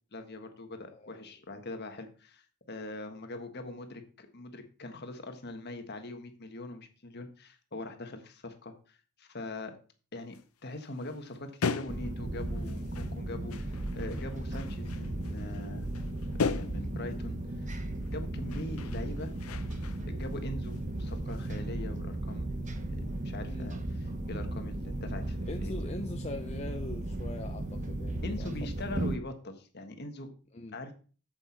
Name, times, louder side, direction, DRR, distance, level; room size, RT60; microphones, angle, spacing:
voice 1, 0.1-9.7 10.1-10.3 10.6-15.9 16.5-17.7 18.1-19.3 20.1-22.5 22.9-23.8 24.3-25.8 28.2-30.3 30.7-30.9, left 2 dB, 50° left, 1.4 m, -42 dB
sound 1, 10.3-10.5 10.8-13.2 13.5-17.2 18.0-18.2 18.5-20.4 20.6-21.6, left 5 dB, 85° left, 0.7 m, -38 dB
sound 2, 11.9-29.2, right 1 dB, 35° right, 1.0 m, -36 dB
voice 2, 25.4-28.5 28.9-29.0 30.5-30.8, left 2 dB, 30° left, 0.6 m, -42 dB
8.0 x 7.9 x 4.4 m
head